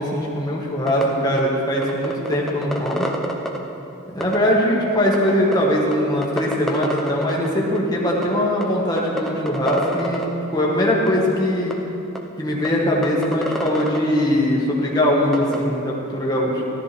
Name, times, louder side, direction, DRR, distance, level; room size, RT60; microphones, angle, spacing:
voice 1, 0.0-3.1 4.1-11.7 12.4-16.6, equal, 15° left, -4 dB, 1.6 m, -21 dB
sound 1, 0.9-1.0 1.4-1.5 1.8-3.6 4.2-4.4 5.1-5.5 5.9-6.0 6.2-7.5 7.7-7.8 8.1-8.3 8.6-8.7 9.0-10.2 11.1-11.2 11.7-11.8 12.1-12.2 12.6-12.7 13.0-14.0 15.3-15.6, equal, ahead, 0.6 m, -26 dB
14.0 x 12.5 x 3.4 m, 2.9 s
head